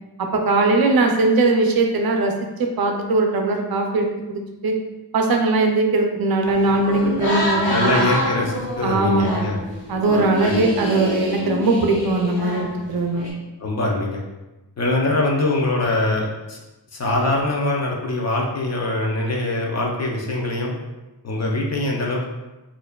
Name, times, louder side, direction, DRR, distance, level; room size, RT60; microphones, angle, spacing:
voice 1, 0.2-2.3 2.6-4.7 5.1-7.9 8.8-9.5 9.9-13.3, right 2 dB, 60° right, 3 dB, 0.5 m, -20 dB
sound 1, 6.5-13.3, equal, 60° left, 0.9 m, -27 dB
voice 2, 7.7-9.6 10.4-10.6 13.6-14.2 14.8-16.6 16.9-20.7 21.2-22.3, left 2 dB, 40° left, -1 dB, 0.6 m, -23 dB
4.5 x 2.6 x 2.2 m, 1.0 s
wide cardioid pair, 150°, 42 cm